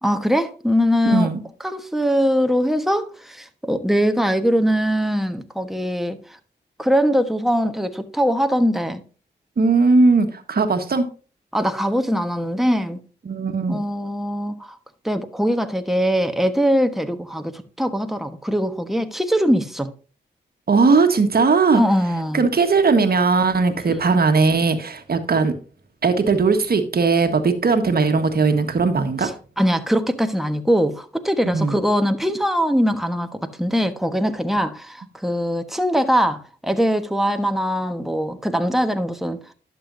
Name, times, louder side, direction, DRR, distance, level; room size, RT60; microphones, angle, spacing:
voice 1, 0.0-1.3 1.6-6.2 6.8-9.0 11.5-13.0 13.7-14.8 15.0-19.9 21.7-22.4 29.2-29.3 29.6-39.4, equal, ahead, 1.2 m, -21 dB
voice 2, 1.0-1.4 9.6-11.1 13.2-13.8 20.7-21.8 22.3-25.6 26.0-29.3 31.4-31.8, right 4 dB, 55° right, 1.5 m, -18 dB
11.5 x 6.8 x 2.7 m
cardioid pair, 50°, 19 cm